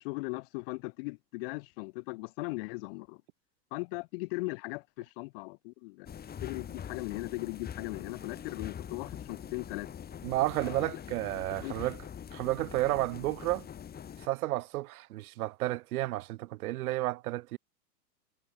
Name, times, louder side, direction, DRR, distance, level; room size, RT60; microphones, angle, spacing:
voice 1, 0.0-3.2 3.7-6.1 6.4-9.9 10.6-10.9 11.6-11.7, left 26 dB, 35° left, 0.7 m, -38 dB
sound 1, 6.1-14.3, left 8 dB, 20° left, 4.6 m, -44 dB
voice 2, 10.2-12.0 12.3-13.7 14.2-17.6, right 17 dB, 65° right, 0.5 m, -32 dB
hypercardioid pair, 135°, 48 cm